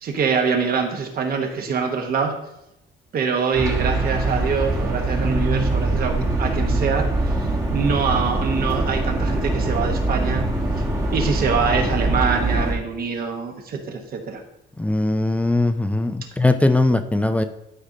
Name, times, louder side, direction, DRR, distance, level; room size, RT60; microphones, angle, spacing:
voice 1, 0.0-2.3 3.1-7.3 7.7-10.5 11.1-14.4, right 5 dB, 50° right, 4 dB, 1.2 m, -24 dB
sound 1, 3.5-12.7, right 2 dB, 15° right, 1.1 m, -23 dB
voice 2, 14.8-17.4, left 2 dB, 5° left, 9 dB, 0.4 m, -20 dB
11.5 x 5.1 x 2.8 m, 0.88 s
cardioid pair, 140°, 19 cm